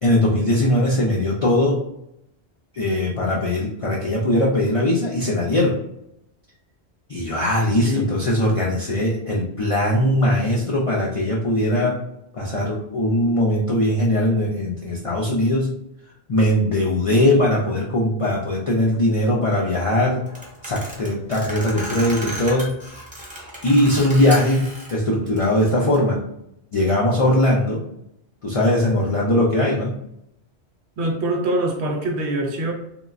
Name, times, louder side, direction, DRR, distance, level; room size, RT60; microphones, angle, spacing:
voice 1, 0.0-1.8 2.7-5.7 7.1-12.0 12.3-15.7 16.3-20.2 20.6-22.7 23.6-26.2 26.7-27.8 28.4-29.9, left 1 dB, 60° left, -4 dB, 0.3 m, -20 dB
sound 1, 20.3-24.9 25.2-26.0, equal, 10° right, 0.5 m, -34 dB
voice 2, 31.0-32.7, right 1 dB, 75° right, 3 dB, 0.9 m, -24 dB
3.0 x 2.2 x 2.4 m, 0.80 s
omnidirectional pair, 1.1 m